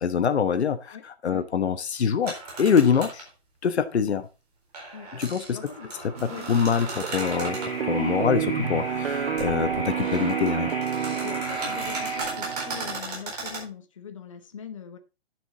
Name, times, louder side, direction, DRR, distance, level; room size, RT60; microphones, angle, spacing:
voice 1, 0.0-1.0 1.2-3.3 3.6-4.3 5.1-5.6 6.0-10.7, left 7 dB, 90° left, 1.2 m, -25 dB
sound 1, 2.2-3.3 4.7-7.7 9.4-9.5 9.9-13.7, right 3 dB, 40° right, 4.3 m, -36 dB
voice 2, 5.5-5.9 6.3-6.5 11.2-15.0, left 7 dB, 30° left, 0.8 m, -41 dB
sound 2, 6.2-13.0, right 8 dB, 65° right, 0.9 m, -30 dB
sound 3, 7.1-12.2, left 1 dB, 5° right, 3.7 m, -37 dB
10.5 x 6.2 x 4.0 m
hypercardioid pair, 180°, 32 cm